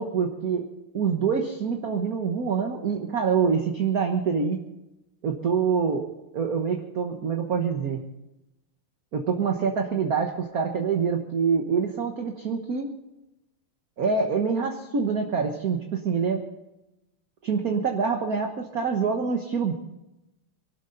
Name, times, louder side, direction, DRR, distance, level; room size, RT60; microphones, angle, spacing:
voice 1, 0.0-4.6 5.2-6.1 6.3-8.0 9.1-12.9 14.0-16.4 17.4-19.7, right 5 dB, 50° right, 3 dB, 1.5 m, -26 dB
23.5 x 12.0 x 4.0 m, 0.94 s
omnidirectional pair, 2.4 m